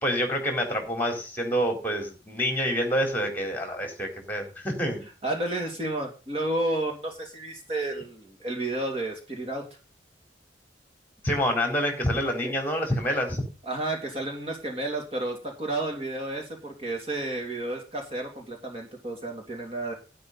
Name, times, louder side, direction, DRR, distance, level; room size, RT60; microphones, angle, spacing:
voice 1, 0.0-5.0 11.2-13.4, equal, 10° left, 3 dB, 4.1 m, -27 dB
voice 2, 5.2-9.6 12.4-12.5 13.6-19.9, right 2 dB, 30° right, 1 dB, 3.0 m, -31 dB
12.0 x 11.0 x 4.1 m, 0.35 s
head